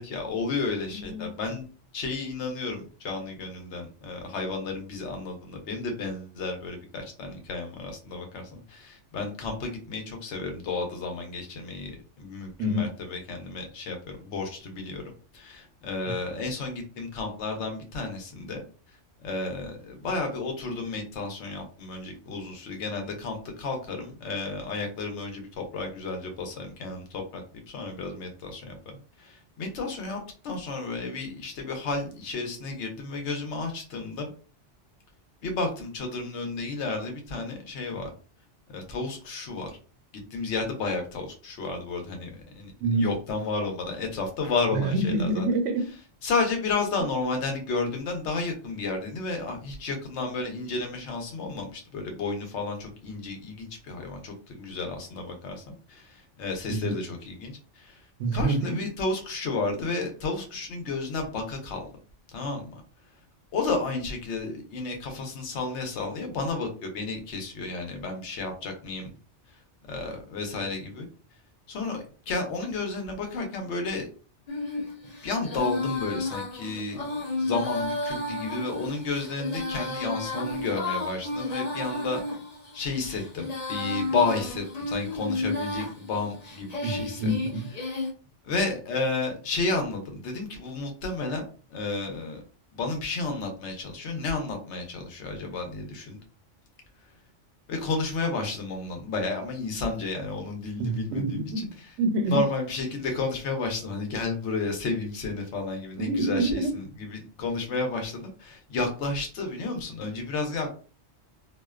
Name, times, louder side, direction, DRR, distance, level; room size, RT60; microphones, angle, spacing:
voice 1, 0.0-1.7 1.9-15.0 15.3-18.6 19.2-27.4 27.7-34.3 35.4-38.1 38.7-39.8 40.3-42.7 43.0-45.4 46.2-58.0 58.3-61.9 62.3-62.7 63.5-69.1 69.9-71.0 71.7-74.1 75.2-77.1 77.4-82.2 82.7-87.3 88.4-91.5 91.7-92.4 92.7-96.2 97.7-101.2 102.3-106.8 107.1-110.7, left 3 dB, 75° left, 1.0 m, -32 dB
voice 2, 0.9-1.3 12.6-12.9 42.8-43.1 44.7-45.9 56.7-56.9 58.2-58.8 86.8-87.7 100.8-101.7 102.0-102.4 106.0-106.8, right 2 dB, 85° right, 0.9 m, -27 dB
Female singing, 74.5-88.1, left 2 dB, 45° left, 0.6 m, -33 dB
2.5 x 2.1 x 2.3 m
omnidirectional pair, 1.2 m